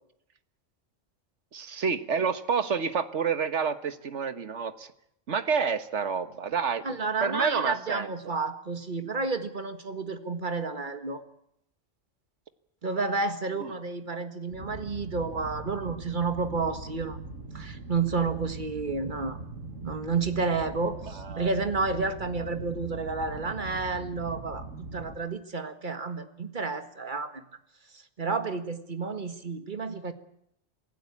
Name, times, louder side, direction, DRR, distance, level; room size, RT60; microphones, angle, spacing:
voice 1, 1.5-4.9 5.3-6.8 7.2-8.1 13.6-13.7 21.2-21.5, right 6 dB, 65° right, 11 dB, 1.6 m, -29 dB
voice 2, 6.8-11.2 12.8-17.2 17.5-19.4 19.8-24.7 24.9-27.4 27.9-30.1, right 4 dB, 40° right, 9 dB, 1.8 m, -31 dB
sound 1, 14.5-25.2, right 3 dB, 90° right, 2.6 m, -41 dB
26.0 x 16.5 x 8.5 m, 0.75 s
omnidirectional pair, 1.3 m